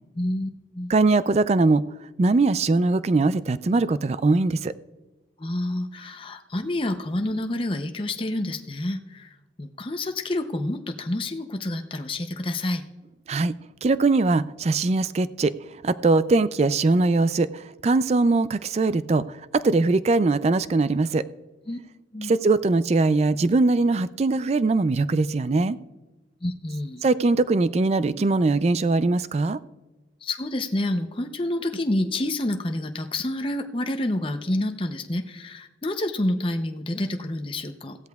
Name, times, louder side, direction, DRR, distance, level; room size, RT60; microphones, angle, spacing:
voice 1, 0.2-0.9 5.4-12.8 21.7-21.8 22.1-22.3 26.4-27.1 30.2-38.0, left 1 dB, 30° left, 0.6 m, -28 dB
voice 2, 0.9-1.8 2.2-4.7 13.3-13.5 13.8-15.5 15.8-21.2 22.2-25.8 27.0-29.6, right 3 dB, 35° right, 0.3 m, -21 dB
15.5 x 13.0 x 2.3 m
head